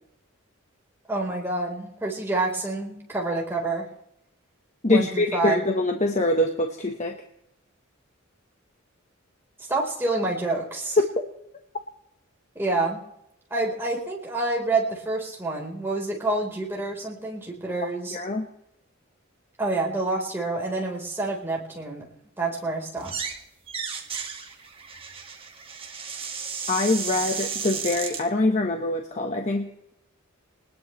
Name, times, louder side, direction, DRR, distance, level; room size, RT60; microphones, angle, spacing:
voice 1, 1.1-3.9 4.9-5.7 9.7-11.0 12.5-13.0 13.5-18.2 19.6-22.1 22.4-23.3, right 2 dB, 10° right, -2 dB, 4.3 m, -28 dB
voice 2, 4.8-7.2 18.1-18.5 26.7-29.9, left 2 dB, 35° left, 3 dB, 1.3 m, -24 dB
sound 1, 23.0-23.4 23.7-28.2, right 6 dB, 25° right, 1.8 m, -33 dB
20.5 x 20.5 x 3.3 m, 0.81 s
head